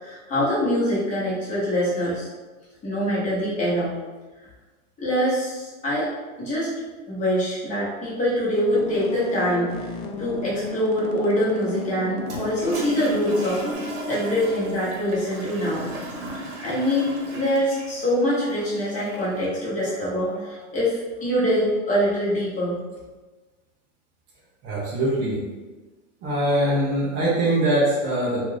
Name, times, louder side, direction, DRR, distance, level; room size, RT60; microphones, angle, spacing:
voice 1, 0.0-2.3 2.8-4.0 5.0-6.1 6.4-6.7 7.1-9.7 10.2-15.9 16.6-22.8, equal, 15° left, -8 dB, 0.9 m, -24 dB
sound 1, 8.7-13.7, left 3 dB, 45° left, 0.5 m, -34 dB
Toilet flush, 12.2-19.4, right 1 dB, 55° right, 0.9 m, -36 dB
voice 2, 24.6-25.4 26.2-28.4, right 1 dB, 20° right, -6 dB, 0.4 m, -22 dB
2.4 x 2.4 x 3.2 m, 1.3 s
supercardioid pair, 135°, 43 cm